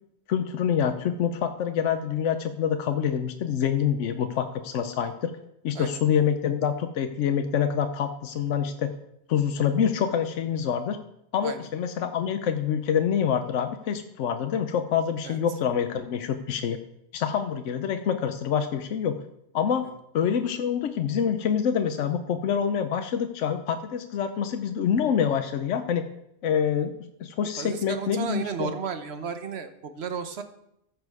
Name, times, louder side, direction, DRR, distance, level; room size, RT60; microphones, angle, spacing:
voice 1, 0.3-5.3 5.6-8.9 9.3-11.0 11.3-16.8 17.1-19.2 19.5-19.9 20.1-26.0 26.4-26.9 27.2-28.7, left 8 dB, 85° left, 7 dB, 1.0 m, -26 dB
voice 2, 27.6-30.4, right 6 dB, 60° right, 8 dB, 1.2 m, -33 dB
14.0 x 6.5 x 4.8 m, 0.79 s
omnidirectional pair, 1.2 m